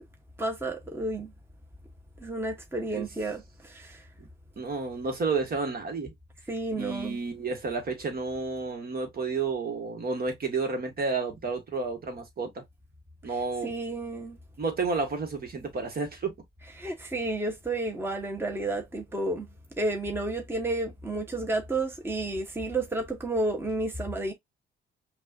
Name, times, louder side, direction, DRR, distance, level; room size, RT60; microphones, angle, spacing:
voice 1, 0.4-1.3 2.2-4.0 6.5-7.2 13.6-14.4 16.8-19.5 19.8-24.3, right 2 dB, 10° right, 1.0 m, -31 dB
voice 2, 4.6-6.1 6.7-12.6 13.2-13.7 14.6-16.3, right 4 dB, 50° right, 1.5 m, -31 dB
5.3 x 2.4 x 2.6 m
cardioid pair, 90°, 20 cm